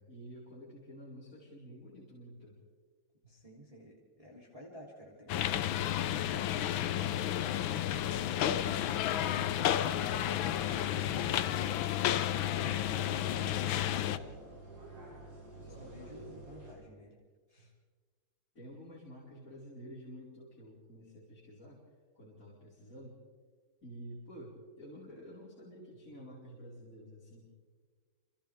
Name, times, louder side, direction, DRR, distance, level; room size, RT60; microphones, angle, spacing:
voice 1, 0.0-2.6 15.6-16.3 17.6-17.7 18.6-21.8 22.2-23.2 23.8-27.5, equal, 35° left, -7 dB, 5.1 m, -50 dB
voice 2, 3.3-8.7 15.5-17.2 17.5-17.7, equal, 15° right, -4 dB, 3.4 m, -53 dB
sound 1, 5.3-14.2, left 11 dB, 70° left, 1.4 m, -31 dB
sound 2, 10.1-16.7, right 2 dB, 75° right, 7.8 m, -49 dB
29.5 x 27.5 x 3.5 m, 1.5 s
omnidirectional pair, 2.4 m